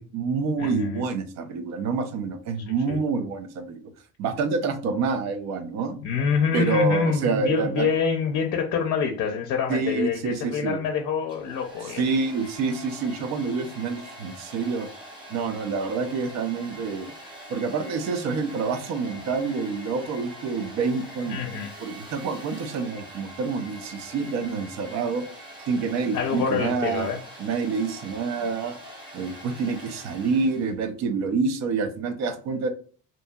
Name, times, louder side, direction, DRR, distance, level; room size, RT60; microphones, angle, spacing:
voice 1, 0.0-3.8 4.2-6.0 6.5-7.9 9.7-10.8 12.0-14.9 15.3-17.1 17.5-21.4 21.8-25.2 25.7-27.1 27.4-28.8 29.1-32.7, right 4 dB, 60° right, 9 dB, 0.5 m, -27 dB
voice 2, 0.6-1.0 2.9-3.0 6.0-12.0 21.3-21.7 26.1-27.2, left 6 dB, 60° left, 2 dB, 0.5 m, -26 dB
Domestic sounds home sounds, 11.2-30.7, right 1 dB, 15° right, 0.6 m, -44 dB
2.7 x 2.6 x 2.2 m, 0.41 s
cardioid pair, 155°, 30 cm